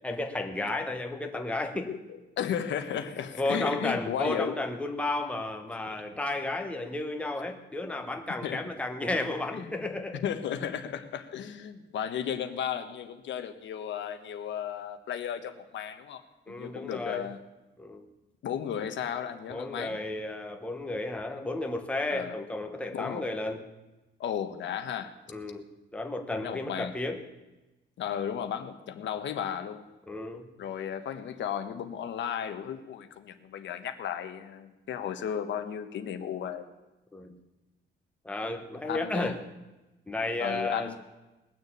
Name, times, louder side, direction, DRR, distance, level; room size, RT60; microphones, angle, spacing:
voice 1, 0.0-1.9 3.4-10.2 16.5-17.3 17.8-18.1 19.5-23.6 25.3-25.6 25.9-27.2 30.1-30.5 37.1-37.4 38.2-39.4 40.1-41.0, left 2 dB, 5° left, 4 dB, 1.2 m, -33 dB
voice 2, 2.4-4.6 5.9-6.0 8.4-8.6 9.5-9.9 10.2-16.2 16.5-17.4 18.4-20.0 22.1-22.4 22.9-23.3 24.2-25.1 26.3-27.0 28.0-29.8 30.6-36.7 38.8-39.3 40.4-41.0, left 9 dB, 80° left, 8 dB, 1.2 m, -34 dB
20.0 x 6.8 x 8.5 m, 1.1 s
wide cardioid pair, 170°, 19 cm